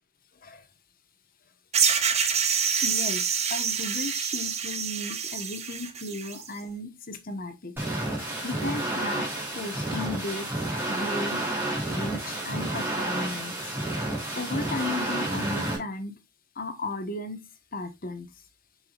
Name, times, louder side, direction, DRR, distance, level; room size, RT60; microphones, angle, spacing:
sound 1, 1.7-6.5, right 7 dB, 35° right, 0.9 m, -27 dB
voice 1, 2.8-7.7 8.4-9.3 9.5-10.5 10.9-11.5 11.9-14.1 14.4-16.2 16.5-17.4 17.7-18.3, left 2 dB, 45° left, 1.3 m, -35 dB
sound 2, 7.8-15.8, right 1 dB, 10° right, 3.7 m, -30 dB
7.6 x 5.9 x 2.4 m
head